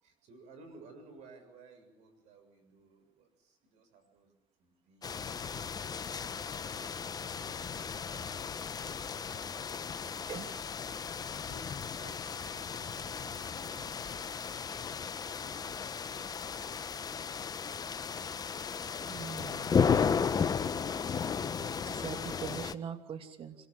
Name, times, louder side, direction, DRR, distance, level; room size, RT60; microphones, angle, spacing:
voice 1, 0.0-4.3 4.6-10.7 10.9-14.8 15.3-17.6, right 2 dB, 65° right, 8 dB, 7.3 m, -58 dB
sound 1, 5.0-22.7, left 6 dB, 30° left, 1.0 m, -35 dB
voice 2, 18.8-19.8 21.9-23.6, right 7 dB, 45° right, 6 dB, 2.8 m, -42 dB
26.0 x 18.5 x 8.8 m, 0.95 s
supercardioid pair, 90°, 13 cm